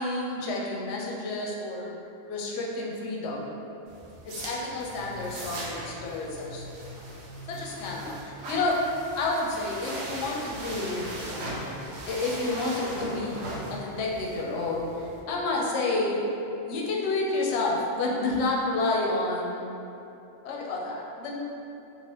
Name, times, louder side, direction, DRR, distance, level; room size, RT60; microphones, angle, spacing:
voice 1, 0.0-1.9 2.3-3.6 4.2-6.6 7.5-8.8 9.2-11.1 12.1-16.3 16.7-19.7 20.4-21.4, left 2 dB, 70° left, -2 dB, 0.8 m, -30 dB
sound 1, 3.9-15.2, right 1 dB, 70° right, 0.9 m, -39 dB
3.1 x 2.5 x 2.9 m, 2.9 s
omnidirectional pair, 1.2 m